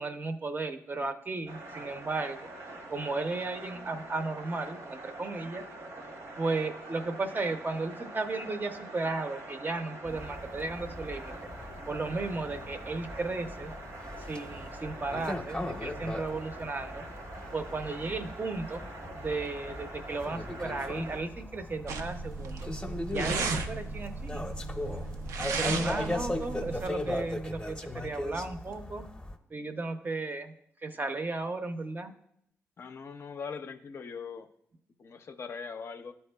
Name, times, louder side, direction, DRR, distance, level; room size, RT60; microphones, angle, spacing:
voice 1, 0.0-2.5 2.9-5.6 6.4-11.3 11.9-13.7 14.2-17.0 17.5-18.8 19.2-22.7 23.1-24.4 25.6-29.1 29.5-30.5 30.8-32.1, right 3 dB, 35° right, 8 dB, 0.5 m, -35 dB
sound 1, 1.5-21.2, right 2 dB, 70° right, 0.9 m, -45 dB
sound 2, 10.1-29.4, left 1 dB, 15° left, 0.7 m, -39 dB
sound 3, 21.9-26.9, right 4 dB, 90° right, 0.4 m, -35 dB
voice 2, 32.8-34.5 35.0-36.1, left 5 dB, 55° left, 8 dB, 0.4 m, -41 dB
10.5 x 4.3 x 2.2 m, 0.74 s
cardioid pair, 65°, 5 cm